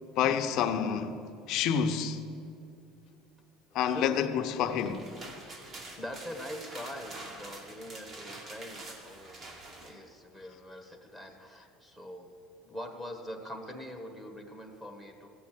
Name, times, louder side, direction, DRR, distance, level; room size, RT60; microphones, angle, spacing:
voice 1, 0.2-1.2 1.5-2.2 3.7-5.1, left 8 dB, 55° left, 0.9 m, -28 dB
sound 1, 4.6-9.9, right 2 dB, 35° right, 2.2 m, -46 dB
voice 2, 6.0-9.4 9.8-12.3 12.6-15.3, equal, 10° right, 1.5 m, -43 dB
15.0 x 8.7 x 7.6 m
cardioid pair, 130°, 0 cm